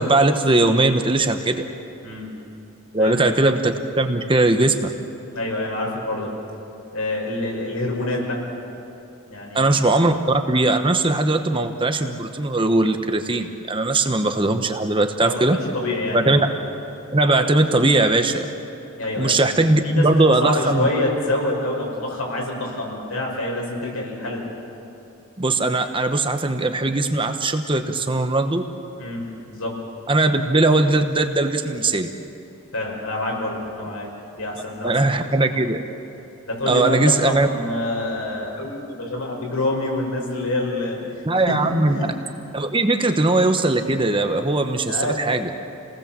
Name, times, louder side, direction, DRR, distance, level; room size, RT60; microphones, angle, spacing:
voice 1, 0.0-1.6 2.9-4.9 9.5-15.6 16.1-16.4 17.1-18.5 19.2-20.9 25.4-28.6 30.1-32.1 34.8-35.8 36.7-37.5 41.2-42.0 42.5-45.5, right 2 dB, 25° right, 7 dB, 1.0 m, -19 dB
voice 2, 3.0-3.4 5.3-6.3 6.9-8.4 9.3-9.8 14.0-14.1 15.2-16.4 19.0-19.6 19.8-24.4 29.0-29.8 32.7-34.9 36.5-42.0 44.9-45.2, left 1 dB, 75° left, -1 dB, 6.0 m, -27 dB
29.0 x 19.0 x 7.5 m, 2.9 s
head